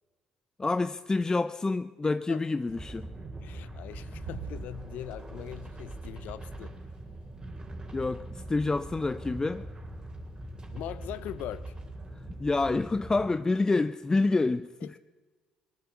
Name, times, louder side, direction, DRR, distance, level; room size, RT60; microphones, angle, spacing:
voice 1, 0.6-3.1 7.9-9.6 12.2-14.7, left 3 dB, 20° left, 13 dB, 0.5 m, -28 dB
voice 2, 2.0-2.4 3.4-6.8 10.7-11.7 14.8-14.9, left 12 dB, 70° left, 17 dB, 0.7 m, -41 dB
sound 1, 2.7-13.3, right 1 dB, 25° right, 3.3 m, -42 dB
sound 2, 3.7-12.6, right 10 dB, 70° right, 1.1 m, -52 dB
19.0 x 10.5 x 7.0 m, 1.3 s
hypercardioid pair, 55°, 3 cm